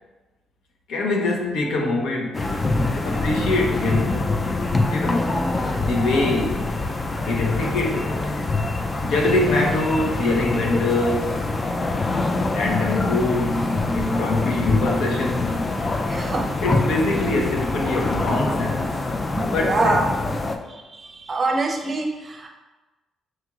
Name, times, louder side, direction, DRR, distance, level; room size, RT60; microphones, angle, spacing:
voice 1, 0.9-2.5 2.9-4.3 4.9-5.4 5.8-6.7 7.1-8.3 9.0-11.4 12.5-15.7 16.6-19.0 19.5-20.0, left 2 dB, 80° left, 1 dB, 0.8 m, -24 dB
sound 1, 2.3-20.6, left 2 dB, 30° left, 0.4 m, -25 dB
voice 2, 16.1-16.5 19.3-20.0 20.7-22.5, right 2 dB, 40° right, 2 dB, 0.6 m, -25 dB
5.9 x 2.9 x 2.4 m, 1.1 s
cardioid pair, 90°, 0 cm